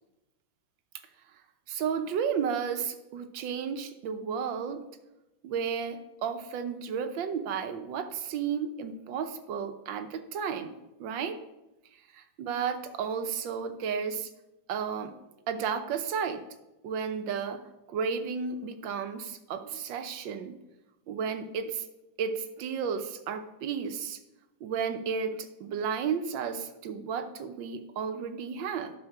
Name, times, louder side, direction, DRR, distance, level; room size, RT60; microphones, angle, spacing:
voice 1, 1.7-4.8 5.4-10.7 11.0-11.4 12.1-14.3 14.7-15.1 15.5-16.4 16.8-17.6 17.9-20.5 21.1-21.9 22.2-24.2 24.6-28.9, right 6 dB, 85° right, 7 dB, 1.6 m, -33 dB
11.5 x 6.2 x 4.6 m, 0.97 s
omnidirectional pair, 2.0 m